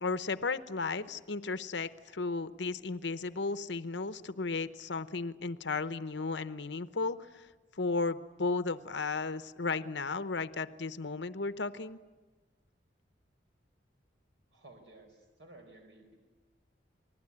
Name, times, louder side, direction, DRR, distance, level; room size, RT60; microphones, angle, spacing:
voice 1, 0.0-12.0, left 4 dB, 75° left, 12 dB, 0.8 m, -34 dB
voice 2, 14.5-16.2, right 2 dB, 75° right, 3 dB, 4.5 m, -55 dB
28.0 x 20.5 x 9.8 m, 1.3 s
head